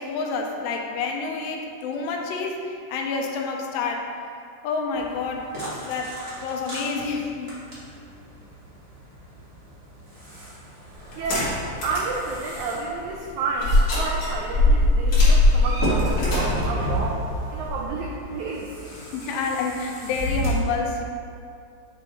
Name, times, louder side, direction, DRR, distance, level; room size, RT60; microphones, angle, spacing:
voice 1, 0.0-4.1 4.6-5.5 5.8-6.2 6.4-7.6 19.0-21.0, left 4 dB, 85° left, 2 dB, 2.3 m, -28 dB
sound 1, 4.9-20.5, equal, 65° right, 0.5 m, -36 dB
sound 2, 11.1-12.1 12.6-12.7 13.6-17.9, left 2 dB, 45° left, 1.9 m, -20 dB
voice 2, 11.1-18.7, right 4 dB, 90° right, -1 dB, 1.6 m, -30 dB
8.2 x 3.6 x 4.0 m, 2.4 s
omnidirectional pair, 4.0 m